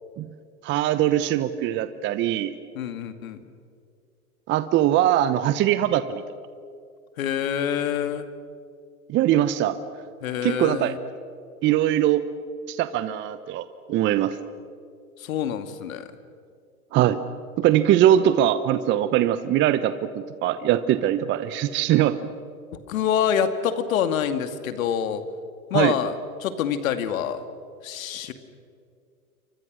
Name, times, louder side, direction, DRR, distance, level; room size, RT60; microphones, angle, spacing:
voice 1, 0.6-2.5 4.5-6.2 9.1-9.8 10.4-10.9 11.6-12.2 12.7-14.4 16.9-17.2 17.6-22.2 25.7-25.9, right 12 dB, 25° right, 13 dB, 0.9 m, -21 dB
voice 2, 2.7-3.4 7.2-8.3 10.2-11.0 15.2-16.1 22.9-25.2 25.7-27.4 27.8-28.3, left 8 dB, 60° left, 10 dB, 2.4 m, -26 dB
29.5 x 24.0 x 6.4 m, 2.3 s
hypercardioid pair, 115°, 45 cm